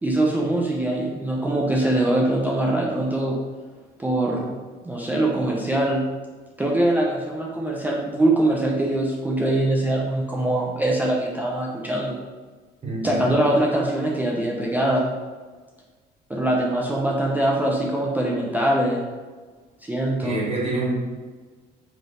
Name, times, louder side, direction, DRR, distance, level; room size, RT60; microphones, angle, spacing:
voice 1, 0.0-3.4 4.0-4.6 4.9-6.0 6.6-12.2 13.0-15.1 16.3-19.0 19.8-20.4, right 1 dB, 10° right, -3 dB, 0.3 m, -23 dB
voice 2, 20.2-21.0, right 2 dB, 40° right, -5 dB, 1.0 m, -26 dB
3.2 x 2.5 x 2.7 m, 1.4 s
cardioid pair, 110°, 17 cm